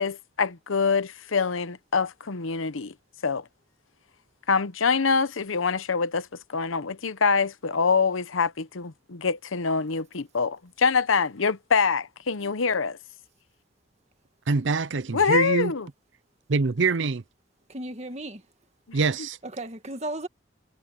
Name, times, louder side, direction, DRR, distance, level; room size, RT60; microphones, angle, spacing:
voice 1, 0.0-2.9 3.2-3.5 4.5-13.0 15.1-15.9 18.9-19.0, left 5 dB, 85° left, 0.9 m, -25 dB
voice 2, 14.5-15.7 16.5-17.2 18.9-19.4, right 4 dB, 70° right, 0.6 m, -24 dB
voice 3, 17.7-18.5 19.4-20.3, right 1 dB, 35° right, 1.8 m, -35 dB
head